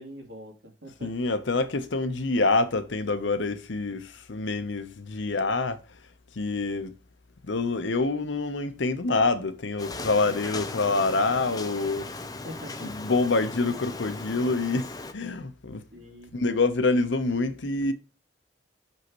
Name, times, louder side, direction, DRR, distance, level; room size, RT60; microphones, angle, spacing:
voice 1, 0.0-1.1 12.4-12.9 15.9-16.3, equal, 80° right, 2.4 m, -43 dB
voice 2, 1.0-5.8 6.4-6.9 7.4-12.1 12.8-15.8 16.3-17.9, left 3 dB, 80° left, 0.8 m, -26 dB
sound 1, 9.8-15.1, left 3 dB, 20° left, 0.5 m, -38 dB
6.2 x 5.5 x 3.0 m
head